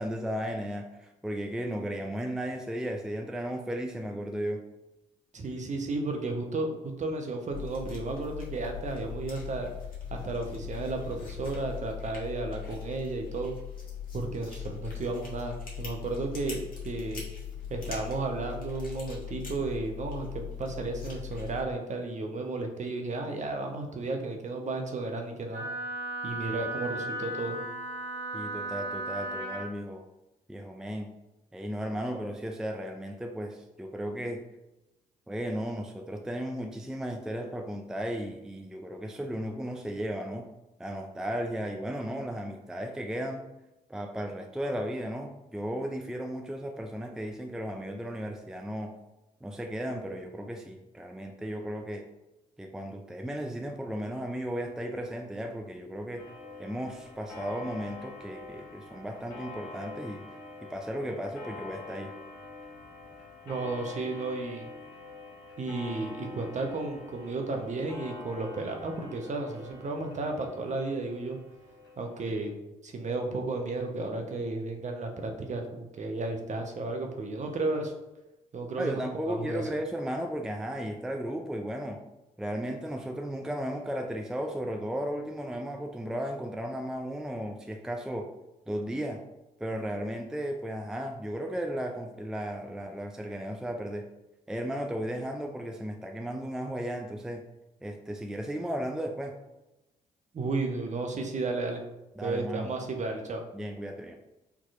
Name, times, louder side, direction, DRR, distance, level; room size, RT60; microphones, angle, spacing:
voice 1, 0.0-4.6 28.3-30.0 30.5-31.1 31.5-34.4 35.3-40.5 40.8-43.4 43.9-48.9 49.4-52.1 52.6-56.2 56.6-60.2 60.6-62.1 78.8-82.0 82.4-88.3 88.7-89.2 89.6-94.1 94.5-97.4 97.8-99.4 102.2-102.7 103.5-104.2, equal, 5° right, 3 dB, 0.4 m, -35 dB
voice 2, 5.3-6.7 7.0-9.7 10.1-13.5 14.1-16.6 16.8-17.2 17.7-25.6 26.2-27.6 63.4-64.7 65.6-71.4 72.0-72.5 72.8-77.9 78.5-79.6 100.3-101.8 102.2-103.4, right 3 dB, 40° right, 3 dB, 0.8 m, -33 dB
sound 1, 7.5-21.6, left 8 dB, 55° left, 1.3 m, -40 dB
Wind instrument woodwind instrument, 25.5-29.7, right 1 dB, 70° right, 0.9 m, -35 dB
Clock, 56.2-72.3, left 3 dB, 80° left, 1.1 m, -46 dB
4.6 x 2.9 x 2.5 m, 0.98 s
hypercardioid pair, 45°, 18 cm